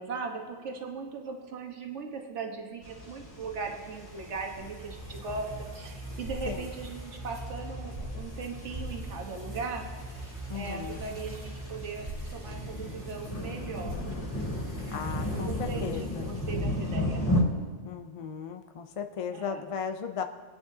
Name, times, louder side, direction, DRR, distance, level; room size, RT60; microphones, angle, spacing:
voice 1, 0.0-9.9 10.2-14.0 15.3-17.2 19.3-19.6, right 4 dB, 70° right, 2 dB, 1.6 m, -39 dB
sound 1, 2.8-17.4, left 1 dB, 70° left, 2.6 m, -36 dB
sound 2, 3.5-16.9, right 1 dB, 25° right, 1.6 m, -42 dB
voice 2, 10.5-11.0 14.9-16.5 17.8-20.2, left 6 dB, 50° left, 6 dB, 0.4 m, -36 dB
25.0 x 9.1 x 2.8 m, 1.5 s
omnidirectional pair, 1.2 m